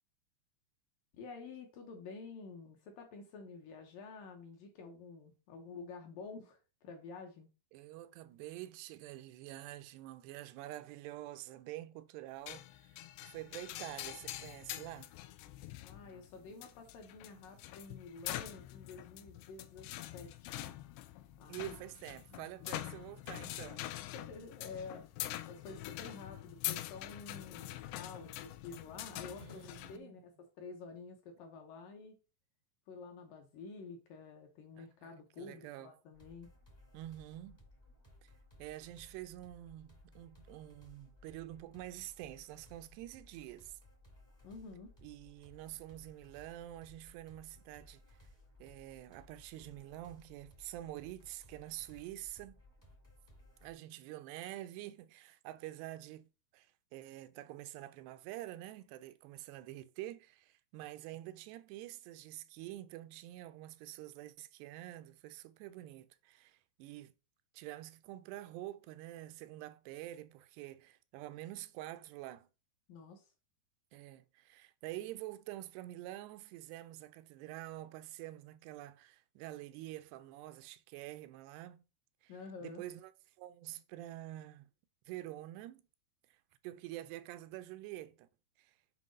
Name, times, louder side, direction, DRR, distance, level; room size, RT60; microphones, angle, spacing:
voice 1, 1.1-7.5 15.8-20.8 21.4-21.7 24.1-25.1 25.5-32.2 32.9-36.5 44.4-44.9 72.9-73.3 82.3-82.8, left 4 dB, 70° left, 2.3 m, -50 dB
voice 2, 7.7-15.1 21.5-23.8 29.4-30.1 34.8-35.9 36.9-37.6 38.2-38.3 38.6-43.8 45.0-48.3 48.6-52.6 53.6-67.1 67.5-72.5 73.9-81.8 82.2-82.3 82.6-83.1 83.4-84.7 85.1-85.8 86.3-86.4 86.6-88.3 88.6-88.8, right 15 dB, 85° right, 2.6 m, -47 dB
sound 1, 12.5-30.0, left 15 dB, 85° left, 2.7 m, -45 dB
sound 2, 36.1-53.7, left 1 dB, 25° left, 0.5 m, -61 dB
7.7 x 2.9 x 5.2 m
omnidirectional pair, 4.7 m